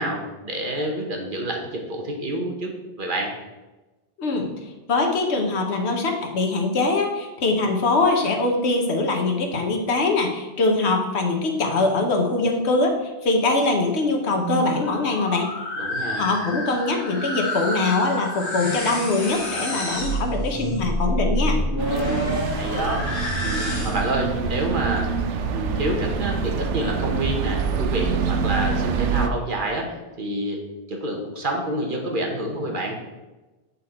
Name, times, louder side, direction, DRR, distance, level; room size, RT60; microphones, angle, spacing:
voice 1, 0.0-2.7 3.0-3.4 15.8-16.3 22.0-23.1 23.4-25.1 25.5-30.6 30.9-33.0, right 1 dB, 50° right, 1 dB, 1.1 m, -28 dB
voice 2, 4.2-4.5 4.9-15.5 16.2-21.6, left 3 dB, 70° left, 2 dB, 1.2 m, -22 dB
sound 1, 14.2-24.2, equal, 50° left, 1.7 m, -28 dB
sound 2, 21.8-29.3, right 5 dB, 85° right, 0.9 m, -26 dB
8.2 x 4.2 x 4.2 m, 1.1 s
omnidirectional pair, 1.2 m